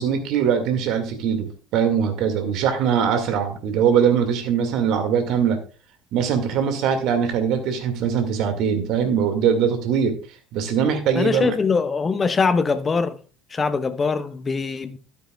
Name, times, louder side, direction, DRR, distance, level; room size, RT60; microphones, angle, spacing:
voice 1, 0.0-5.6 6.1-10.1 10.5-11.5, right 7 dB, 55° right, 1.9 m, -21 dB
voice 2, 11.1-13.2 13.5-15.0, left 4 dB, 25° left, 0.8 m, -22 dB
12.5 x 10.5 x 2.3 m
figure-of-eight pair, 65°, 0 cm